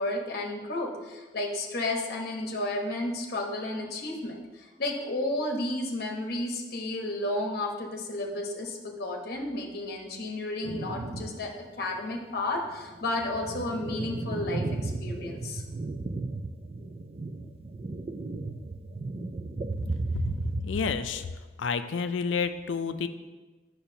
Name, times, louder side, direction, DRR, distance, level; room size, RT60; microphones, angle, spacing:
voice 1, 0.0-11.5 11.8-15.6, left 2 dB, 55° left, 1 dB, 1.0 m, -32 dB
sound 1, 10.6-11.5 12.0-12.1 12.7-20.6, right 3 dB, 30° right, 0.4 m, -35 dB
voice 2, 20.6-21.3 21.6-23.1, left 5 dB, 75° left, 10 dB, 0.4 m, -29 dB
8.7 x 6.0 x 2.7 m, 1.2 s
head